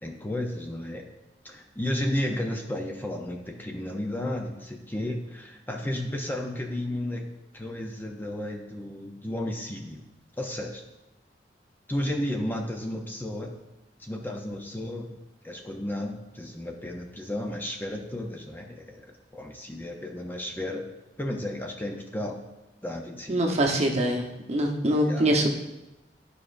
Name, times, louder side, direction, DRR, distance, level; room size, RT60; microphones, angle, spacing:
voice 1, 0.0-1.1 1.4-7.3 7.5-10.0 10.4-10.8 11.9-13.6 14.0-15.1 15.4-20.9 21.2-22.4 22.8-23.6 25.0-25.3, left 1 dB, 10° left, 2 dB, 0.6 m, -33 dB
voice 2, 23.3-25.5, right 1 dB, 40° right, 1 dB, 0.9 m, -24 dB
11.5 x 4.9 x 2.5 m, 1.0 s
head